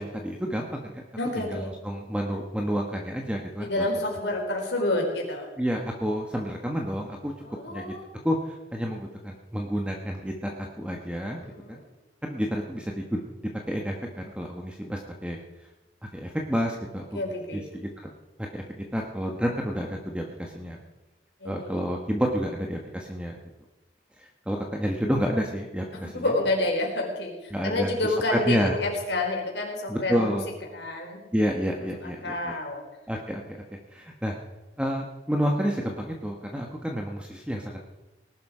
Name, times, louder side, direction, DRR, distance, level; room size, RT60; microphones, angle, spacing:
voice 1, 0.0-1.0 1.3-3.9 5.6-7.3 7.7-7.9 8.2-11.8 12.2-13.2 13.7-15.4 16.1-17.2 17.5-18.1 18.5-20.8 21.4-23.4 24.2-26.3 27.5-28.8 29.9-30.5 31.3-32.5 33.1-33.6 33.9-34.4 34.8-37.8, equal, 5° right, 1 dB, 1.3 m, -30 dB
voice 2, 1.2-1.8 3.6-5.5 7.4-8.0 11.4-11.8 17.1-17.7 21.4-21.8 25.9-30.4 30.7-31.3 32.0-32.8, left 2 dB, 85° left, 0 dB, 4.5 m, -29 dB
19.0 x 12.0 x 5.0 m, 1.1 s
head